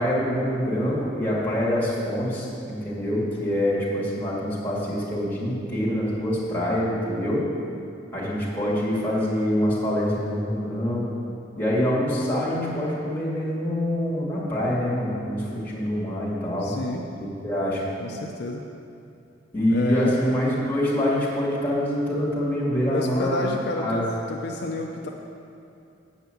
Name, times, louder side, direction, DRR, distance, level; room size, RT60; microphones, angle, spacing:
voice 1, 0.0-7.4 8.1-11.1 11.6-16.7 17.2-17.8 19.5-23.4 23.8-24.0, equal, 10° left, -7 dB, 2.4 m, -25 dB
voice 2, 16.6-17.0 18.0-18.7 19.7-20.2 22.9-25.1, left 2 dB, 60° left, 1 dB, 0.6 m, -30 dB
8.5 x 5.8 x 7.8 m, 2.6 s
head